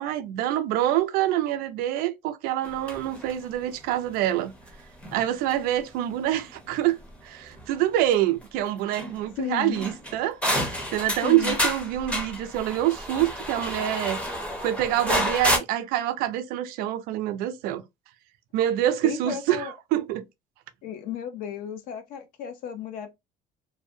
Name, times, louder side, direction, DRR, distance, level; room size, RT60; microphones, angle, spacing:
voice 1, 0.0-4.5 5.1-14.2 14.6-17.8 18.5-20.2, right 13 dB, 70° right, 0.5 m, -26 dB
sound 1, 2.6-4.1 4.6-4.7 5.0-5.5 6.3-7.1 7.4-7.7 8.1-8.2 8.4-8.5 8.9-9.5 9.7-15.6, equal, 5° left, 0.6 m, -29 dB
voice 2, 9.4-9.8 11.2-11.6 19.0-19.7 20.8-23.1, left 8 dB, 65° left, 0.5 m, -34 dB
2.6 x 2.1 x 2.6 m
cardioid pair, 155°, 16 cm